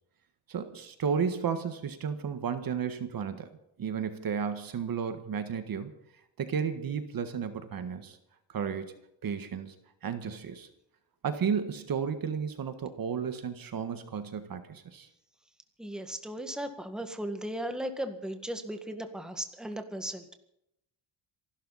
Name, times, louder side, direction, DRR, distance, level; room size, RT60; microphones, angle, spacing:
voice 1, 0.5-3.5 3.8-5.9 6.4-8.2 8.5-8.9 9.2-9.7 10.0-10.7 11.2-15.1, right 7 dB, 50° right, 8 dB, 1.7 m, -33 dB
voice 2, 15.8-20.3, right 1 dB, ahead, 5 dB, 1.9 m, -36 dB
27.0 x 12.5 x 4.2 m, 0.80 s
cardioid pair, 110°, 44 cm